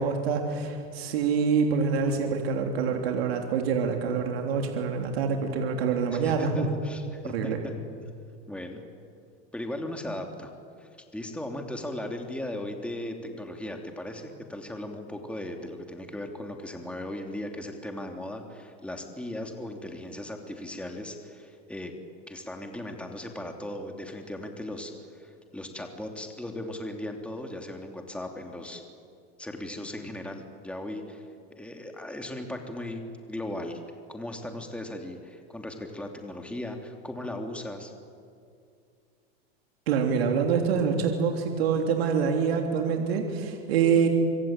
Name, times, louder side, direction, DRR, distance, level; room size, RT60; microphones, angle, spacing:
voice 1, 0.0-6.7 7.3-7.6 39.9-44.1, right 6 dB, 85° right, 3 dB, 3.3 m, -26 dB
voice 2, 6.1-7.7 8.5-8.8 9.5-10.5 10.8-21.9 22.3-28.8 29.4-31.3 31.6-33.0 33.3-33.8 34.1-37.9, left 1 dB, 5° left, 3 dB, 3.0 m, -37 dB
25.0 x 25.0 x 9.1 m, 2.3 s
supercardioid pair, 115°, 30 cm